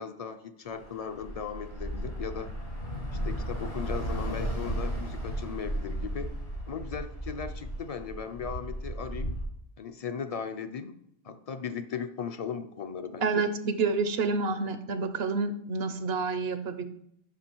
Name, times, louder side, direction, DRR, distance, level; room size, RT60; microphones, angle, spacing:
voice 1, 0.0-2.5 3.2-6.3 6.7-9.4 9.8-11.0 11.2-13.5, left 6 dB, 45° left, 10 dB, 0.5 m, -37 dB
Bus / Traffic noise roadway noise, 0.7-9.4, right 1 dB, 70° left, 2.4 m, -35 dB
voice 2, 13.2-16.8, right 4 dB, 80° right, 10 dB, 0.9 m, -28 dB
7.9 x 5.8 x 4.5 m, 0.72 s
omnidirectional pair, 1.0 m